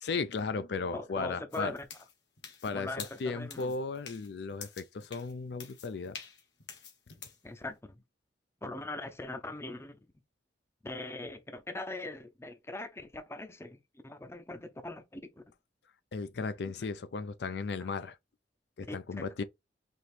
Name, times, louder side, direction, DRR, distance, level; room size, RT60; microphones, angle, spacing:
voice 1, 0.0-1.7 2.6-6.2 16.1-18.2 18.8-19.4, left 4 dB, 65° left, 0.4 m, -35 dB
voice 2, 0.9-1.9 2.7-3.7 7.4-8.0 8.6-10.0 10.8-15.4 17.8-17.9 18.9-19.4, left 2 dB, 15° left, 0.5 m, -41 dB
sound 1, 1.5-7.4, left 6 dB, 80° left, 1.4 m, -48 dB
4.3 x 2.9 x 3.2 m
head